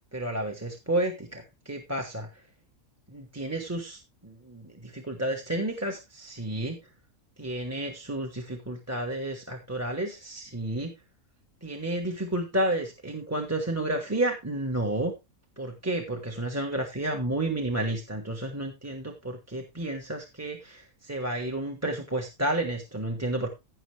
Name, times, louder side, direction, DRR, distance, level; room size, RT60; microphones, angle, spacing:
voice 1, 0.1-2.3 3.1-6.8 7.4-10.9 11.6-15.1 15.6-23.5, right 1 dB, 10° right, 5 dB, 1.2 m, -31 dB
15.5 x 6.3 x 3.3 m, 0.24 s
omnidirectional pair, 1.5 m